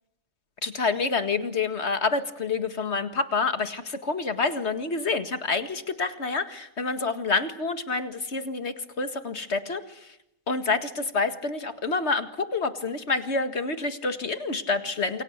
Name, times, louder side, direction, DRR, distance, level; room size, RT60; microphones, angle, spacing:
voice 1, 0.6-10.2 10.5-15.2, left 4 dB, 55° left, 8 dB, 2.2 m, -28 dB
28.5 x 23.0 x 8.0 m, 0.83 s
omnidirectional pair, 1.4 m